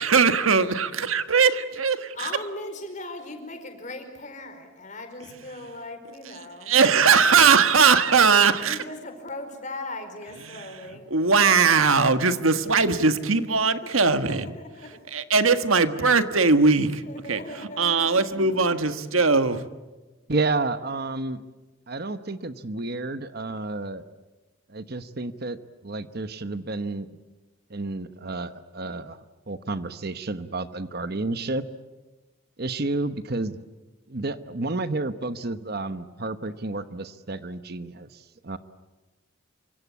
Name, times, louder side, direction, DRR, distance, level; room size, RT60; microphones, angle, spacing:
voice 1, 0.0-2.3 6.7-8.8 10.5-10.7 11.1-14.5 15.1-17.0 17.3-17.4 17.8-19.6, right 5 dB, 90° right, 10 dB, 1.6 m, -20 dB
voice 2, 2.1-6.7 7.4-7.8 8.6-11.1 11.4-11.8 14.0-15.0 16.8-18.2, left 2 dB, 40° left, 6 dB, 4.8 m, -39 dB
voice 3, 20.3-21.4 21.9-24.1 24.7-27.1 27.7-29.2 29.5-31.6 32.6-33.6 34.1-38.6, right 2 dB, 50° right, 11 dB, 1.1 m, -31 dB
28.0 x 25.0 x 8.4 m, 1.2 s
head